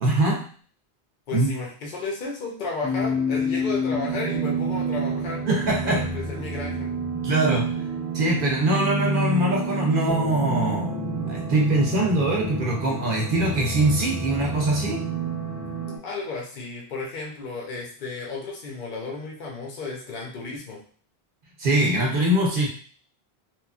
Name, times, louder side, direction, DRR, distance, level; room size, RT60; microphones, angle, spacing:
voice 1, 0.0-0.5 1.3-1.5 5.5-6.1 7.2-7.7 8.1-10.9 11.3-15.0 21.6-22.7, right 1 dB, 60° right, -1 dB, 0.8 m, -22 dB
voice 2, 1.3-5.4 5.8-6.9 16.0-20.8, left 3 dB, 55° left, -2 dB, 0.8 m, -33 dB
sound 1, 2.8-16.0, right 1 dB, 5° right, 0.3 m, -28 dB
2.9 x 2.4 x 2.3 m, 0.43 s
omnidirectional pair, 1.1 m